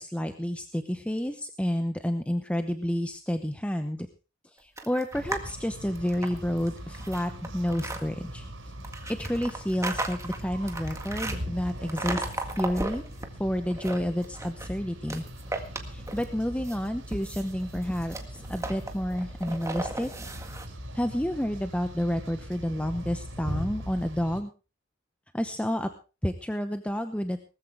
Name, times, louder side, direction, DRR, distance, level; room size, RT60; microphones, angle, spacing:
voice 1, 0.0-4.1 4.5-8.5 9.1-12.2 12.6-13.0 13.4-15.2 15.8-20.1 20.9-24.5 25.3-25.9 26.2-27.4, equal, 5° left, 7 dB, 0.9 m, -30 dB
sound 1, 4.8-5.5 5.9-8.0 8.8-11.4 11.9-13.3 13.6-14.7 15.1-16.3 16.6-20.7, right 2 dB, 15° right, 1.8 m, -36 dB
sound 2, 5.1-24.4, equal, 75° right, 6.2 m, -40 dB
19.0 x 14.0 x 3.5 m, 0.33 s
head